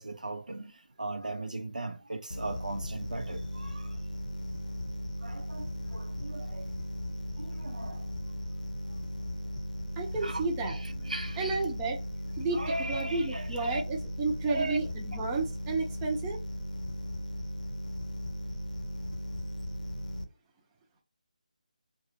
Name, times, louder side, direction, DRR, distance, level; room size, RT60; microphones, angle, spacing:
voice 1, 0.0-3.9 5.2-6.7 7.4-8.1 10.2-11.6 12.5-13.8 14.4-14.8, right 2 dB, 80° right, 0.6 m, -38 dB
sound 1, 2.3-20.2, equal, 75° left, 0.6 m, -37 dB
voice 2, 10.0-10.8 11.4-12.0 12.4-12.6 12.9-16.4, right 3 dB, 15° right, 0.7 m, -31 dB
4.7 x 2.3 x 2.9 m
figure-of-eight pair, 155°, 4 cm